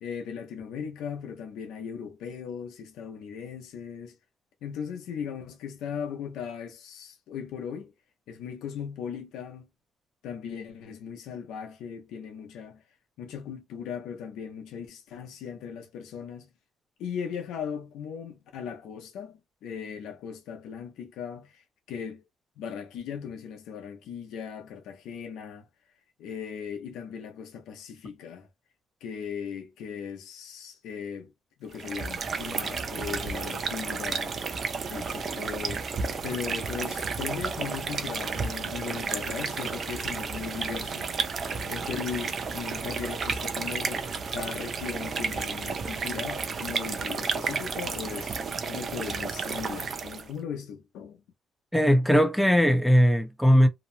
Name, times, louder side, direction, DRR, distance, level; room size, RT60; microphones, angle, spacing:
voice 1, 0.0-4.1 4.6-7.9 8.3-9.7 10.2-12.8 13.2-16.5 17.0-21.6 21.9-22.2 22.6-25.7 26.2-28.5 29.0-31.3 31.6-34.4 34.9-35.9 36.2-51.2, left 7 dB, 90° left, 0.7 m, -38 dB
sound 1, 31.7-50.3, right 5 dB, 50° right, 0.5 m, -32 dB
voice 2, 51.7-53.7, equal, ahead, 0.7 m, -19 dB
2.8 x 2.0 x 2.7 m
cardioid pair, 90°, 0 cm